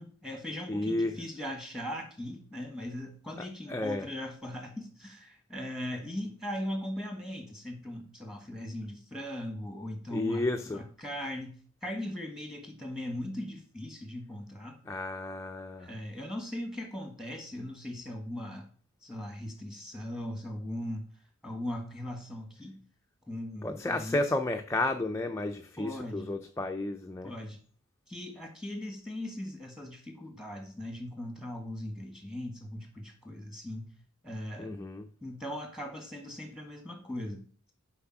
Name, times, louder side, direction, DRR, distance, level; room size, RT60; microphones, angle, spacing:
voice 1, 0.0-14.8 15.8-18.7 19.0-21.1 21.4-22.8 23.3-24.2 25.8-26.3 27.2-27.6 28.1-33.9 34.2-34.7 35.2-37.4, left 1 dB, ahead, 1.5 m, -39 dB
voice 2, 0.7-1.2 3.4-4.1 10.1-10.9 14.9-15.9 23.6-27.3 34.6-35.1, left 2 dB, 15° left, 0.3 m, -32 dB
6.9 x 4.8 x 5.8 m
head